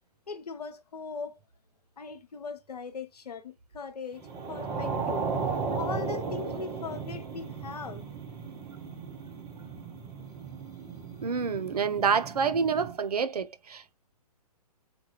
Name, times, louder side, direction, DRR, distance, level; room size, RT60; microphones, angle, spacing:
voice 1, 0.3-1.4 2.0-5.2 5.7-8.0, left 5 dB, 75° left, 0.6 m, -39 dB
sound 1, 4.2-13.0, right 5 dB, 20° right, 0.7 m, -35 dB
voice 2, 11.2-13.9, right 6 dB, 75° right, 0.6 m, -28 dB
3.7 x 2.2 x 2.8 m
figure-of-eight pair, 125°, 20 cm